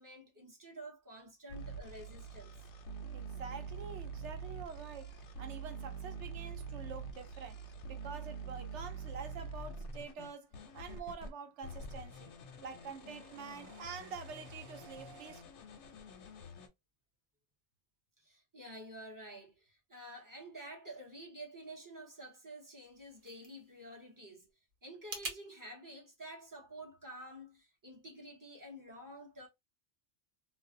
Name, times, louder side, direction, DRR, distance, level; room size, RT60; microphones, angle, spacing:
voice 1, 0.0-2.6 18.2-24.5 24.8-29.5, right 1 dB, 20° right, 0.6 m, -50 dB
sound 1, 1.5-11.3 11.6-16.7, right 4 dB, 85° left, 0.9 m, -46 dB
voice 2, 3.1-12.3 12.6-15.4, right 6 dB, 80° right, 0.9 m, -47 dB
sound 2, 22.8-25.4, right 3 dB, 50° right, 0.8 m, -47 dB
2.5 x 2.0 x 2.5 m
omnidirectional pair, 1.2 m